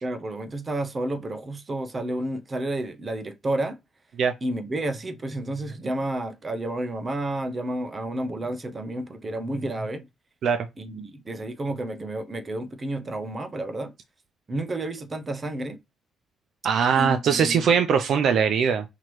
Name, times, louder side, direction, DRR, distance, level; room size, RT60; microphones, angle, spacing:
voice 1, 0.0-3.8 4.4-10.1 10.8-13.9 14.5-15.8 16.9-17.7, right 1 dB, 30° right, 0.9 m, -31 dB
voice 2, 16.6-18.8, right 7 dB, 70° right, 0.5 m, -21 dB
5.8 x 3.0 x 3.1 m
cardioid pair, 90°, 0 cm